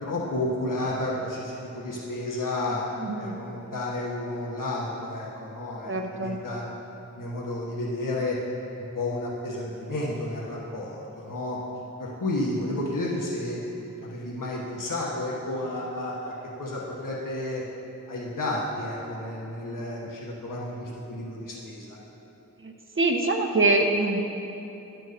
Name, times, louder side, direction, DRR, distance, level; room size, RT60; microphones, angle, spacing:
voice 1, 0.0-6.6 7.2-8.4 8.9-11.6 12.0-17.6 18.1-22.0, left 1 dB, 75° left, -4 dB, 1.1 m, -31 dB
voice 2, 3.0-3.4 5.9-6.4 23.0-24.2, right 2 dB, 40° right, 2 dB, 0.9 m, -24 dB
9.4 x 4.5 x 6.5 m, 3.0 s
cardioid pair, 40°, 32 cm